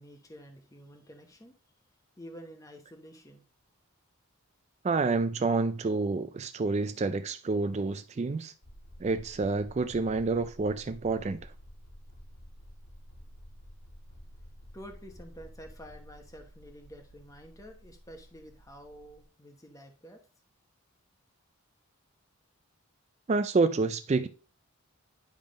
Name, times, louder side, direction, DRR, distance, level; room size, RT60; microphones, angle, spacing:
voice 1, 0.0-1.5 2.2-3.4 14.7-20.2, equal, 15° left, 0.9 m, -49 dB
voice 2, 4.8-8.5 9.0-11.5 23.3-24.3, right 3 dB, 30° right, 0.3 m, -28 dB
sound 1, 8.6-19.2, equal, 65° left, 2.2 m, -51 dB
10.5 x 3.6 x 5.1 m
head